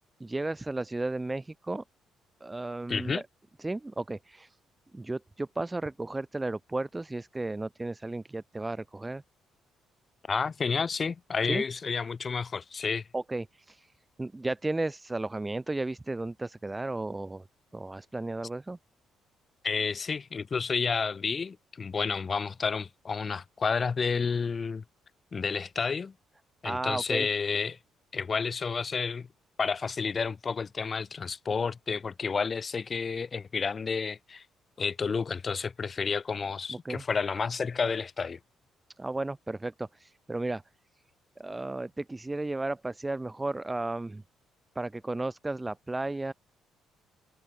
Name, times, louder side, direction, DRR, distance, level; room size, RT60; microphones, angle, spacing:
voice 1, 0.2-1.8 2.4-3.2 3.6-4.5 4.9-9.2 11.5-11.6 13.1-13.9 14.2-17.4 17.7-18.8 26.6-27.3 36.7-37.0 39.0-40.6 41.4-44.2 44.8-46.3, right 2 dB, 10° right, 0.6 m, -34 dB
voice 2, 2.9-3.2 10.3-13.0 19.6-24.8 25.3-26.1 26.6-27.8 28.1-29.3 29.6-34.4 34.8-38.4, left 5 dB, 25° left, 2.6 m, -30 dB
cardioid pair, 160°, 0 cm